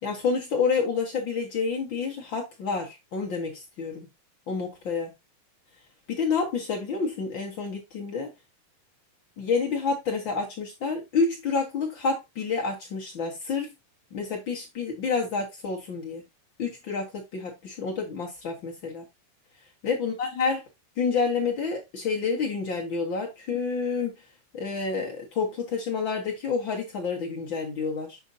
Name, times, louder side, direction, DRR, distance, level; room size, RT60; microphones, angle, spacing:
voice 1, 0.0-4.1 4.5-5.1 6.1-8.3 9.4-13.7 14.1-16.2 16.6-19.0 19.8-20.6 21.0-24.1 24.5-28.2, left 5 dB, 60° left, 1.2 m, -29 dB
7.2 x 5.3 x 2.6 m
omnidirectional pair, 4.0 m